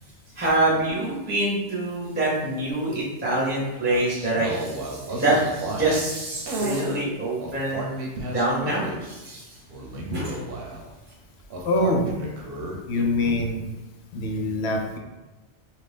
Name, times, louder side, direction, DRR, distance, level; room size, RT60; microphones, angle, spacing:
voice 1, 0.4-7.9 8.3-9.5 10.1-10.4, right 2 dB, 10° right, -6 dB, 0.6 m, -25 dB
sound 1, 3.7-6.1 6.4-7.0 7.4-9.1 9.7-10.9 11.5-13.4, right 1 dB, 60° right, 0.8 m, -32 dB
voice 2, 11.6-12.1 12.9-13.7 14.1-15.0, left 2 dB, 70° left, 2 dB, 0.8 m, -24 dB
2.9 x 2.6 x 3.3 m, 1.1 s
omnidirectional pair, 1.2 m